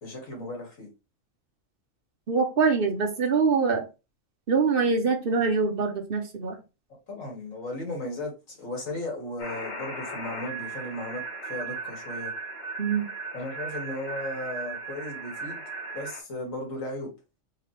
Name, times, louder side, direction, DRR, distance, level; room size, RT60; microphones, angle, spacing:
voice 1, 0.0-0.9 7.1-12.3 13.3-15.6 15.9-17.1, left 1 dB, 80° left, 2.2 m, -36 dB
voice 2, 2.3-3.8 4.5-6.6 12.8-13.1, right 5 dB, 50° right, 0.9 m, -24 dB
sound 1, 9.4-16.2, right 3 dB, 60° left, 1.6 m, -37 dB
5.1 x 2.8 x 3.2 m
omnidirectional pair, 1.4 m